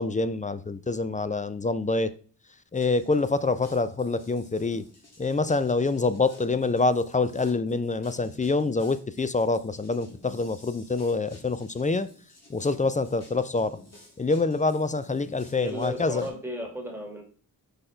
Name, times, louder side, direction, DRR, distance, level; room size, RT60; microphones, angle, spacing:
voice 1, 0.0-2.1 2.7-4.9 5.2-12.1 12.5-13.8 14.2-16.3, left 3 dB, 20° left, 0.4 m, -26 dB
sound 1, 2.7-16.3, left 2 dB, 40° left, 2.1 m, -52 dB
voice 2, 15.6-17.2, equal, 5° right, 1.9 m, -34 dB
5.2 x 4.3 x 4.3 m
cardioid pair, 70°, 37 cm